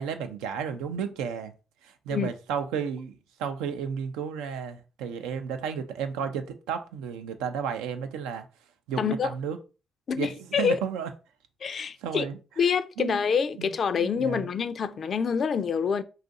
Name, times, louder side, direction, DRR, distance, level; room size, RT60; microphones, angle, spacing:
voice 1, 0.0-1.5 1.8-8.5 8.9-9.6 10.1-11.1 11.8-12.4 13.0-13.2 13.6-14.6, right 7 dB, 85° right, 0.4 m, -33 dB
voice 2, 9.0-9.3 10.1-10.8 11.6-12.3 12.6-16.0, left 6 dB, 55° left, 0.3 m, -26 dB
2.6 x 2.4 x 3.9 m
supercardioid pair, 55°, 0 cm